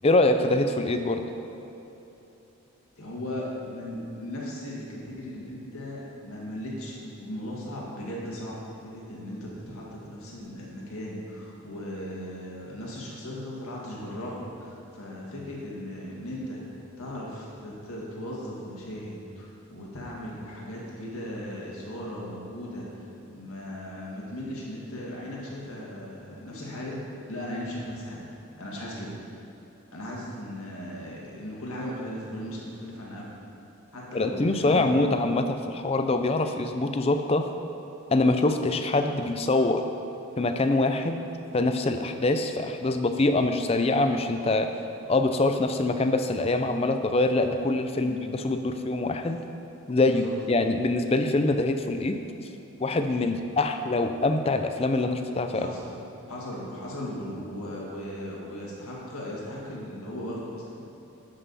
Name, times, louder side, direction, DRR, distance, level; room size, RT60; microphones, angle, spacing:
voice 1, 0.0-1.2 34.1-37.4 38.1-39.8 40.4-41.3 41.5-44.7 45.1-49.4 49.9-52.2 52.8-55.7, left 2 dB, 25° left, 7 dB, 0.4 m, -24 dB
voice 2, 3.0-28.2 28.6-29.1 29.9-33.3 33.9-35.0 48.0-48.3 50.1-50.3 55.5-56.0 56.3-60.8, left 1 dB, 80° left, -4 dB, 1.9 m, -37 dB
11.5 x 5.5 x 4.1 m, 3.0 s
head